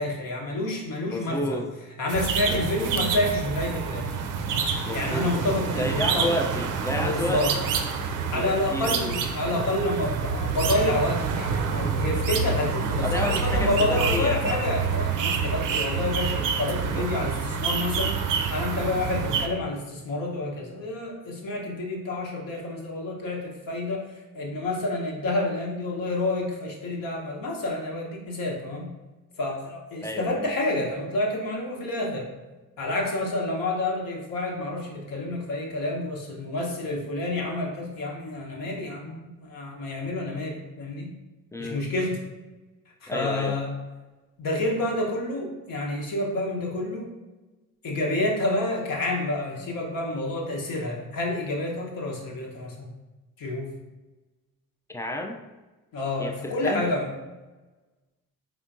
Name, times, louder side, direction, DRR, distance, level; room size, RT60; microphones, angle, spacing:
voice 1, 0.0-1.6 2.0-4.1 4.9-6.3 7.0-7.5 8.1-18.2 18.5-28.9 29.4-32.3 32.8-41.1 41.6-42.2 43.0-43.7 44.4-47.1 47.8-52.9 53.4-53.7 55.9-57.1, left 2 dB, 50° left, -1 dB, 1.1 m, -29 dB
voice 2, 1.1-1.7 2.5-2.9 4.9-5.3 5.8-7.6 8.3-9.0 13.0-14.4 16.7-17.1 30.0-30.5 41.5-41.8 43.1-43.6 54.9-55.4 56.2-56.9, left 1 dB, 10° left, 3 dB, 0.3 m, -30 dB
sound 1, 2.1-19.5, right 5 dB, 45° right, 0.6 m, -27 dB
4.3 x 3.5 x 2.6 m, 1.1 s
figure-of-eight pair, 45°, 43 cm